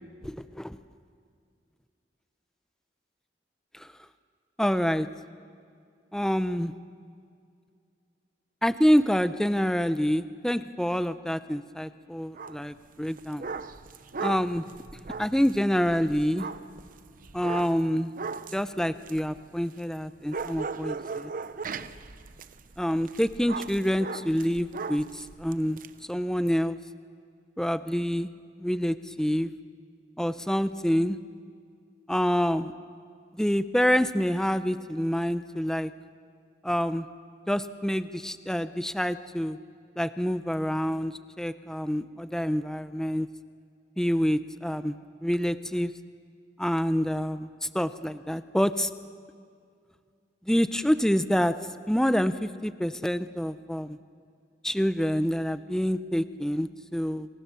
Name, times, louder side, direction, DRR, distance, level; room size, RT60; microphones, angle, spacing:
voice 1, 0.2-0.8 3.7-3.9 4.6-5.1 6.1-6.7 8.6-13.5 14.2-14.6 15.2-16.5 17.3-18.1 18.5-21.3 22.8-25.8 26.1-26.8 27.6-28.3 28.6-29.5 30.2-31.2 32.1-32.7 33.4-35.9 36.6-37.1 37.5-39.6 40.0-43.3 44.0-45.9 46.6-48.9 50.5-51.5 51.9-54.0 54.6-57.3, equal, 5° left, 12 dB, 0.6 m, -27 dB
sound 1, 12.4-12.6 13.0-20.0 20.3-25.9, right 4 dB, 50° right, 0.8 m, -38 dB
29.5 x 23.5 x 7.0 m, 2.3 s
head